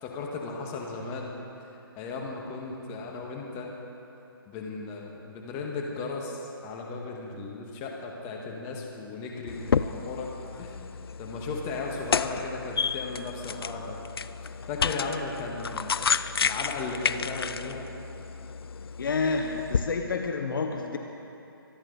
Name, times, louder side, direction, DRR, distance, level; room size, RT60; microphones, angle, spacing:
voice 1, 0.0-1.3 1.6-3.7 4.5-10.3 10.6-10.8 11.2-14.0 14.4-16.1 16.4-17.9, left 3 dB, 20° left, -1 dB, 1.7 m, -36 dB
sound 1, 9.5-19.8, left 6 dB, 75° left, 0.5 m, -31 dB
voice 2, 19.0-21.0, left 4 dB, 60° left, 4 dB, 1.1 m, -29 dB
25.0 x 10.5 x 4.1 m, 2.8 s
hypercardioid pair, 150°, 13 cm